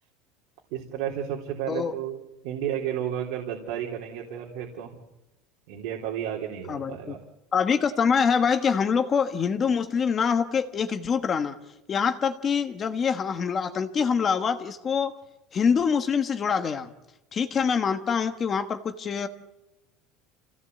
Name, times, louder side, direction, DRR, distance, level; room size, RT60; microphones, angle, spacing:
voice 1, 0.7-4.9 5.7-7.2, right 10 dB, 75° right, -1 dB, 3.6 m, -32 dB
voice 2, 6.7-7.1 7.5-11.6 11.9-15.1 15.5-16.9 17.3-19.3, left 6 dB, 25° left, 8 dB, 1.3 m, -25 dB
27.5 x 17.0 x 8.3 m, 0.95 s
cardioid pair, 160°, 0 cm